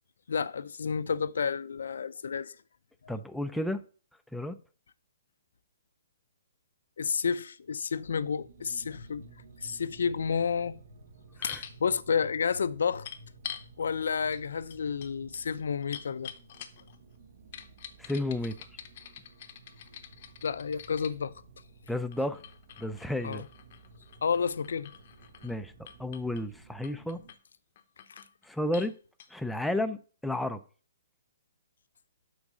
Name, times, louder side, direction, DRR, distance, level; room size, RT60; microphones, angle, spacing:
voice 1, 0.3-2.6 3.0-3.1 7.0-9.3 9.6-10.8 11.4-13.1 13.8-16.3 20.4-21.3 23.2-23.5 24.2-24.9 28.1-28.2, left 6 dB, 75° left, 0.4 m, -30 dB
voice 2, 3.1-3.8 4.3-4.6 11.4-11.6 18.0-18.6 21.9-22.4 22.8-23.4 25.4-25.7 26.0-27.2 28.4-29.0 29.3-30.6, left 1 dB, ahead, 0.3 m, -32 dB
sound 1, 8.3-27.3, right 3 dB, 60° right, 1.2 m, -54 dB
sound 2, 11.4-11.8 13.0-13.7 14.3-14.4 14.7-17.0 17.5-21.1 22.1-25.6 25.9-26.4 26.8-27.4 27.8-28.3 28.7-28.9 29.2-29.3, left 9 dB, 40° left, 0.6 m, -45 dB
6.1 x 4.0 x 6.3 m
hypercardioid pair, 170°, 0 cm